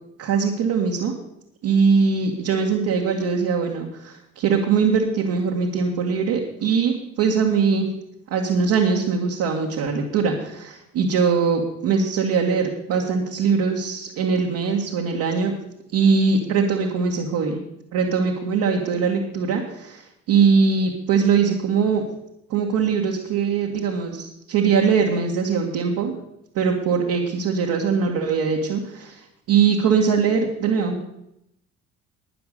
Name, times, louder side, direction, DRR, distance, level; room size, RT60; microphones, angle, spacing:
voice 1, 0.2-1.2 1.6-7.9 8.3-15.5 15.9-17.6 17.9-20.0 20.3-22.0 22.5-26.1 26.6-29.2 29.5-31.0, right 5 dB, 60° right, 0 dB, 1.9 m, -21 dB
12.0 x 9.6 x 6.7 m, 0.80 s
figure-of-eight pair, 45°, 38 cm